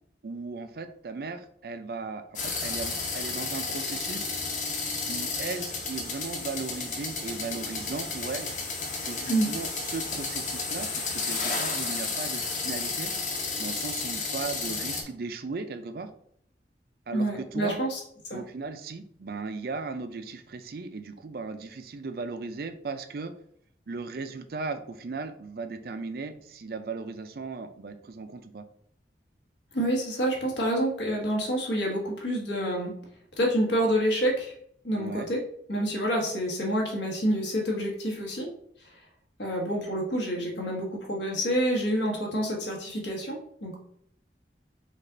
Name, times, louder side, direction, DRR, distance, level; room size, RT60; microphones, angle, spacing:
voice 1, 0.2-4.3 5.1-8.5 9.0-13.1 13.6-16.1 17.1-17.8 18.3-23.3 23.9-28.7 34.9-35.3, right 4 dB, 55° right, 9 dB, 0.4 m, -37 dB
sound 1, 2.4-15.0, left 4 dB, 45° left, 0.9 m, -32 dB
voice 2, 17.1-18.0 18.3-18.4 29.7-32.9 33.4-34.5 34.8-35.4 35.7-38.5 39.4-43.8, equal, 90° left, -1 dB, 1.4 m, -28 dB
5.3 x 2.4 x 3.8 m, 0.67 s
head